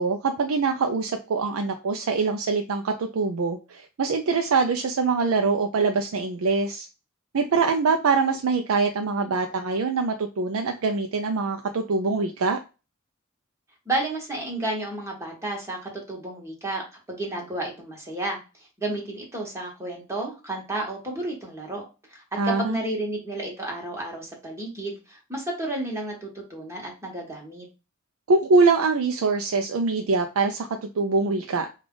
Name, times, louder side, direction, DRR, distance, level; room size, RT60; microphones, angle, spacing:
voice 1, 0.0-6.9 7.3-12.6 22.4-22.8 28.3-31.7, right 4 dB, 80° right, 4 dB, 0.5 m, -24 dB
voice 2, 13.8-21.8 22.1-27.6, right 2 dB, 15° right, -1 dB, 1.3 m, -32 dB
5.0 x 2.4 x 3.7 m, 0.30 s
head